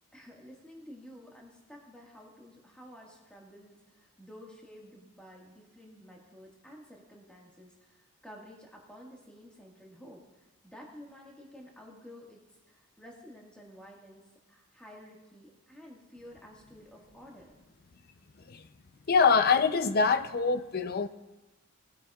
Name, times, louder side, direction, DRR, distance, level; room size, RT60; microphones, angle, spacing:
voice 1, 0.1-12.4 12.7-14.2 14.5-17.5, equal, 5° left, -2 dB, 1.7 m, -51 dB
voice 2, 19.1-21.1, left 5 dB, 45° left, 11 dB, 0.5 m, -24 dB
19.5 x 9.0 x 2.4 m, 1.1 s
head